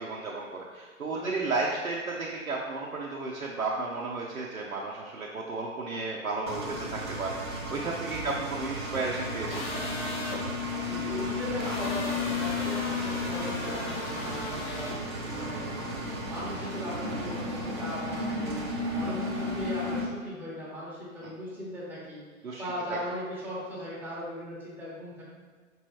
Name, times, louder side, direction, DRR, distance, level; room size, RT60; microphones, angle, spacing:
voice 1, 0.0-9.9 19.0-19.1 21.2-21.3 22.4-22.6, right 3 dB, 85° right, -3 dB, 0.6 m, -33 dB
voice 2, 1.1-1.5 7.8-8.4 10.8-14.9 15.3-15.8 16.2-18.6 18.9-22.2 22.6-25.2, equal, 5° right, -8 dB, 1.0 m, -38 dB
Engine, 6.5-20.0, left 2 dB, 20° right, 0.4 m, -33 dB
sound 1, 9.5-10.4 11.6-15.0, left 2 dB, 60° left, 0.9 m, -38 dB
5.2 x 3.0 x 3.1 m, 1.5 s
figure-of-eight pair, 115°, 41 cm